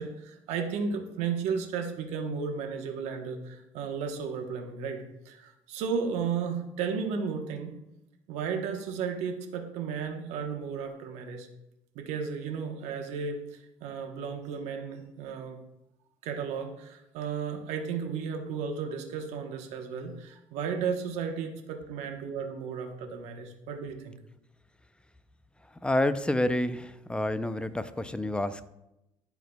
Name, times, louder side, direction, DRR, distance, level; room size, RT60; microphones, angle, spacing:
voice 1, 0.0-7.8 8.3-11.5 11.9-15.6 16.2-24.2, right 6 dB, 75° right, 4 dB, 1.0 m, -34 dB
voice 2, 25.8-28.6, left 1 dB, 10° left, 12 dB, 0.4 m, -28 dB
11.5 x 4.6 x 2.3 m, 0.87 s
supercardioid pair, 85°, 12 cm